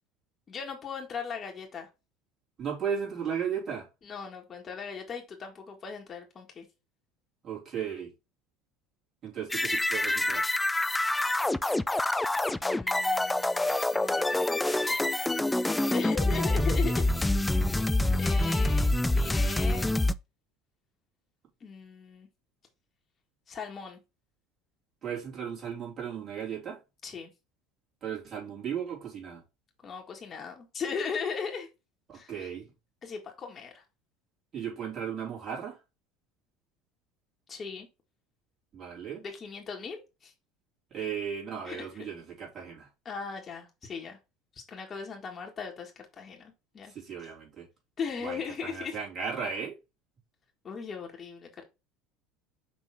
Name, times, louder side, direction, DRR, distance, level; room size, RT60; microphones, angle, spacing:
voice 1, 0.5-1.9 4.0-6.7 12.6-15.1 15.9-17.3 18.2-19.9 21.6-22.3 23.5-24.0 27.0-27.3 29.8-31.7 32.1-32.5 33.0-33.8 37.5-37.9 39.2-40.3 41.6-41.9 43.1-44.2 44.5-46.9 48.0-49.0 50.6-51.6, left 6 dB, 35° left, 1.8 m, -38 dB
voice 2, 2.6-3.9 7.4-8.1 9.2-10.5 25.0-26.8 28.0-29.4 32.1-32.7 34.5-35.8 38.7-39.2 40.9-42.9 46.9-47.7 48.2-49.8, right 7 dB, 40° right, 3.7 m, -35 dB
sound 1, 9.5-20.1, left 2 dB, 10° left, 0.4 m, -26 dB
6.0 x 3.6 x 4.8 m
hypercardioid pair, 70°, 0 cm